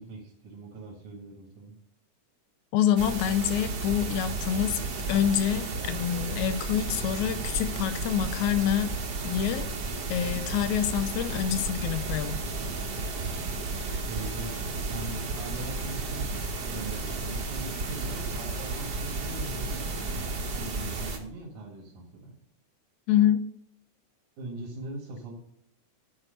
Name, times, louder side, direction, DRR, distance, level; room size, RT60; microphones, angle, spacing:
voice 1, 0.0-1.7 14.1-14.5 14.9-22.3 24.4-25.3, right 2 dB, 80° right, -3 dB, 3.3 m, -41 dB
voice 2, 2.7-4.8 5.1-8.9 9.2-9.7 10.1-12.4 23.1-23.4, left 10 dB, 80° left, 11 dB, 2.0 m, -26 dB
sound 1, 3.0-21.2, right 3 dB, 50° right, 1.3 m, -33 dB
9.7 x 4.7 x 6.4 m, 0.72 s
omnidirectional pair, 3.5 m